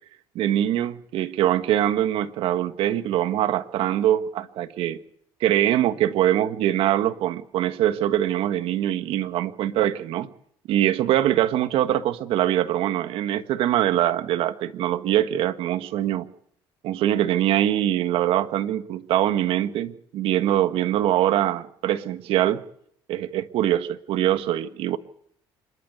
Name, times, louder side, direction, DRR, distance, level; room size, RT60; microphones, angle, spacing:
voice 1, 0.3-5.0 5.4-10.3 10.7-16.3 16.8-22.6 23.1-25.0, right 12 dB, 80° right, 1.5 m, -23 dB
27.0 x 13.0 x 8.1 m
cardioid pair, 95°, 10 cm